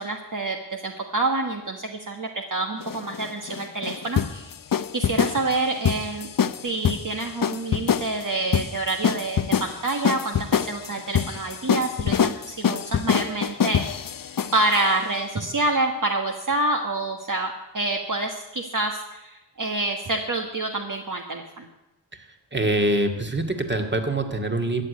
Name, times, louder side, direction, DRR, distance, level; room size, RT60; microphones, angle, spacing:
voice 1, 0.0-4.5 4.9-6.3 6.6-13.8 14.5-21.7, right 2 dB, 45° right, 2 dB, 1.5 m, -27 dB
sound 1, 2.8-14.8, left 8 dB, 50° left, 0.7 m, -25 dB
voice 2, 22.1-24.8, right 1 dB, 25° right, 5 dB, 2.1 m, -25 dB
14.0 x 8.6 x 9.3 m, 0.94 s
cardioid pair, 55°, 44 cm